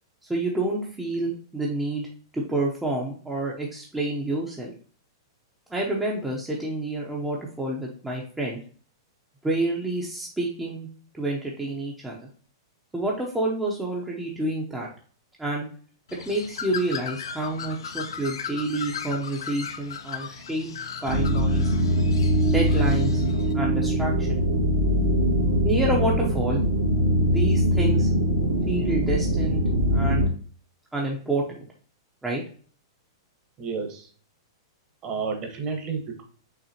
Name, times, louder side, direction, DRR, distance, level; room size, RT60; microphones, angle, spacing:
voice 1, 0.2-2.1 2.3-4.7 5.7-8.6 9.4-10.9 11.1-12.3 12.9-14.9 15.4-15.7 16.3-20.7 21.0-21.7 22.5-23.2 23.5-24.4 25.6-26.6 27.2-28.1 28.7-29.6 29.9-30.3 30.9-31.7 32.2-32.4, right 2 dB, 5° right, -3 dB, 0.7 m, -28 dB
Bird, 16.1-23.5, left 7 dB, 90° left, 0.6 m, -37 dB
sound 1, 21.1-30.3, equal, 80° right, 2.1 m, -22 dB
voice 2, 33.6-34.1 35.0-36.2, right 5 dB, 30° right, 3 dB, 1.2 m, -31 dB
5.7 x 3.3 x 2.8 m, 0.44 s
hypercardioid pair, 150°, 2 cm